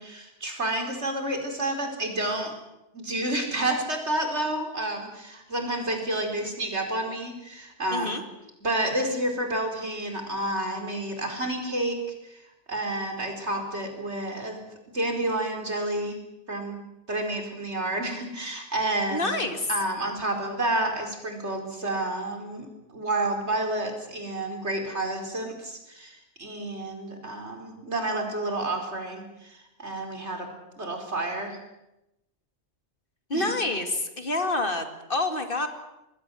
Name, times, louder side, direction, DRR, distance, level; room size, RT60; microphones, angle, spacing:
voice 1, 0.0-2.5 2.9-8.2 8.6-12.0 12.7-14.6 14.9-16.2 16.5-16.8 17.1-19.4 19.7-22.7 22.9-30.5 30.8-31.6 33.3-33.5, right 1 dB, 70° right, 4 dB, 5.0 m, -30 dB
voice 2, 7.9-8.2 19.1-19.7 33.3-35.7, left 2 dB, 50° left, 7 dB, 2.5 m, -27 dB
26.5 x 20.5 x 7.8 m, 0.91 s
omnidirectional pair, 1.2 m